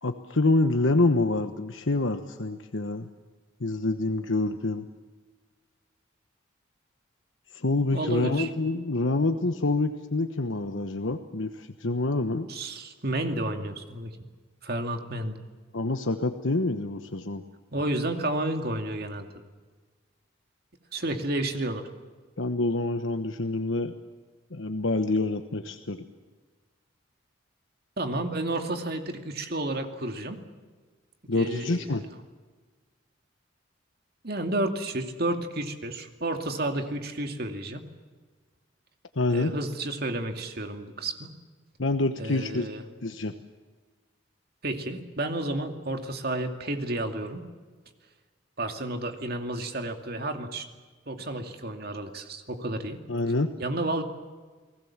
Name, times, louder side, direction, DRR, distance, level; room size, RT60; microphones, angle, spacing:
voice 1, 0.0-3.1 3.6-4.8 7.5-12.5 15.7-17.4 22.4-23.9 24.5-26.0 31.3-32.0 39.2-39.5 41.8-42.7 43.0-43.3 53.1-53.5, left 2 dB, 75° left, 7 dB, 1.2 m, -26 dB
voice 2, 7.9-8.5 12.5-14.1 14.6-15.4 17.7-19.3 20.9-21.9 28.0-30.4 31.3-31.9 34.2-37.8 39.3-41.3 42.2-42.8 44.6-47.4 48.6-50.7 51.1-53.0 53.6-54.0, right 1 dB, 50° right, 5 dB, 2.5 m, -31 dB
30.0 x 20.0 x 7.4 m, 1.4 s
head